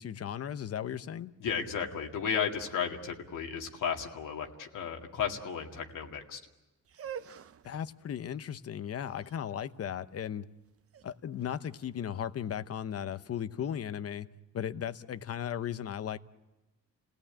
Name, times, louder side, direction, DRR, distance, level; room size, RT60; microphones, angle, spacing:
voice 1, 0.0-1.3 7.6-10.5 11.0-14.3 14.5-16.2, left 9 dB, 50° left, 13 dB, 0.9 m, -36 dB
voice 2, 1.4-6.4, left 7 dB, 85° left, 2 dB, 2.2 m, -34 dB
sound 1, 6.8-12.8, right 8 dB, 45° right, 0.9 m, -48 dB
29.5 x 17.5 x 8.8 m, 1.1 s
cardioid pair, 140°, 31 cm